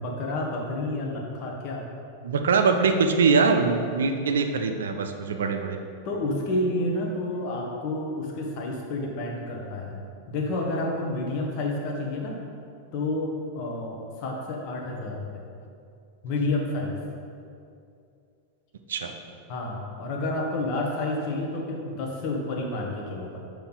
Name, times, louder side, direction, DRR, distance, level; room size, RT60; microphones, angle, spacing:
voice 1, 0.0-1.8 6.0-10.0 10.3-12.4 12.9-15.3 16.2-17.0 19.5-23.4, left 2 dB, 45° left, -1 dB, 1.2 m, -29 dB
voice 2, 2.2-5.8 18.9-19.1, right 4 dB, 65° right, 6 dB, 0.5 m, -23 dB
7.0 x 5.0 x 3.9 m, 2.5 s
figure-of-eight pair, 90°, 0 cm